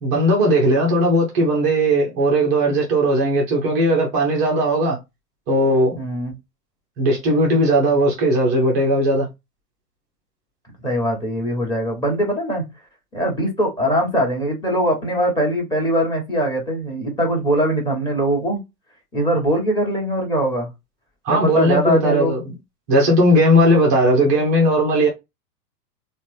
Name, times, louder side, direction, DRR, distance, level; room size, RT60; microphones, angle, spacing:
voice 1, 0.0-5.0 5.5-6.0 7.0-9.3 21.2-22.5 22.9-25.1, equal, 10° right, 0.3 m, -17 dB
voice 2, 6.0-6.3 10.8-12.7 13.1-18.6 19.1-20.7 21.3-22.3, equal, 10° left, 1.2 m, -21 dB
3.7 x 2.1 x 3.2 m
figure-of-eight pair, 100°, 47 cm